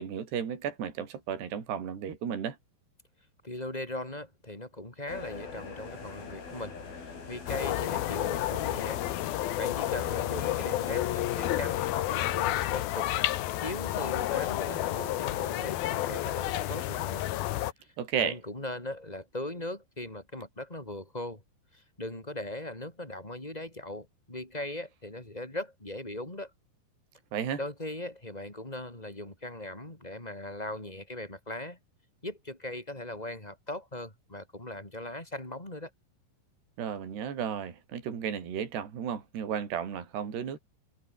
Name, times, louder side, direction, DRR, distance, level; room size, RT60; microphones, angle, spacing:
voice 1, 0.0-2.6 18.0-18.3 27.3-27.6 36.8-40.6, right 8 dB, 55° right, 6.0 m, -33 dB
voice 2, 3.4-6.8 7.3-9.0 9.6-13.1 13.6-17.3 17.8-17.9 18.2-21.4 21.7-26.5 27.6-31.8 32.2-35.9, left 1 dB, 10° left, 4.2 m, -39 dB
sound 1, 5.1-11.2, left 5 dB, 50° left, 7.7 m, -44 dB
sound 2, 7.5-17.7, left 14 dB, 75° left, 2.3 m, -30 dB
omnidirectional pair, 5.8 m